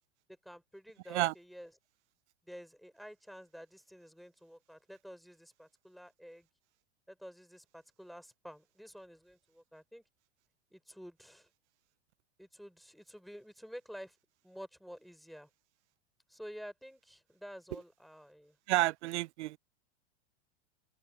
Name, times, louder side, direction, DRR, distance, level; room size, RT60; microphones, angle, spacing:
voice 1, 0.3-1.7 2.4-6.5 7.1-10.0 10.7-11.5 12.4-14.2 14.4-15.5 16.3-18.6, equal, ahead, 5.0 m, -50 dB
voice 2, 18.7-19.6, right 17 dB, 80° right, 0.5 m, -30 dB
supercardioid pair, 130°, 34 cm